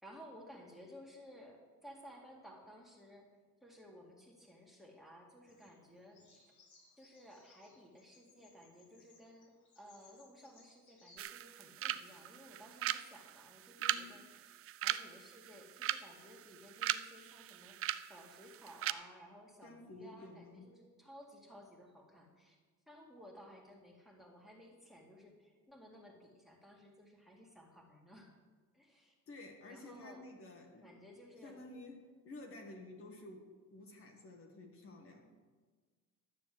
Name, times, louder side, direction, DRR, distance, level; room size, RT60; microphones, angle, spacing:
voice 1, 0.0-3.3 3.6-6.5 6.9-22.6 22.9-28.3 28.7-29.1 29.7-30.2 30.8-31.6, equal, ahead, -1 dB, 2.0 m, -57 dB
Bird vocalization bird call bird song, 5.5-11.3, left 3 dB, 80° left, 4.7 m, -66 dB
sound 1, 11.2-18.9, right 12 dB, 45° right, 0.5 m, -40 dB
voice 2, 13.8-14.2 19.6-20.7 29.3-31.0 31.4-35.3, left 2 dB, 45° left, 2 dB, 1.6 m, -52 dB
11.5 x 6.9 x 7.6 m, 1.4 s
cardioid pair, 150°, 31 cm